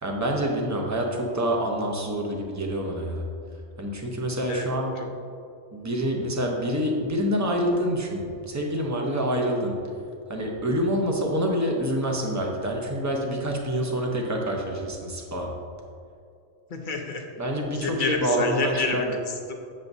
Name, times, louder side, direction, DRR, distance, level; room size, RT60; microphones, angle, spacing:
voice 1, 0.0-3.2 3.8-4.9 5.7-9.7 10.3-15.5 17.4-19.1, equal, 15° right, 0 dB, 0.6 m, -27 dB
voice 2, 16.7-17.3 17.7-19.5, left 3 dB, 45° left, 2 dB, 0.8 m, -29 dB
7.6 x 7.0 x 2.7 m, 2.5 s
omnidirectional pair, 1.3 m